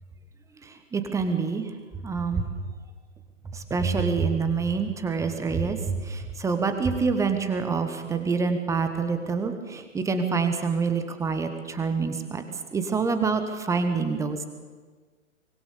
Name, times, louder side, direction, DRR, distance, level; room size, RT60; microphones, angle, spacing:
voice 1, 0.6-1.7 2.0-2.4 3.5-12.4 12.7-14.5, right 5 dB, 10° right, 8 dB, 1.3 m, -26 dB
24.5 x 20.0 x 6.9 m, 1.4 s
figure-of-eight pair, 120°, 39 cm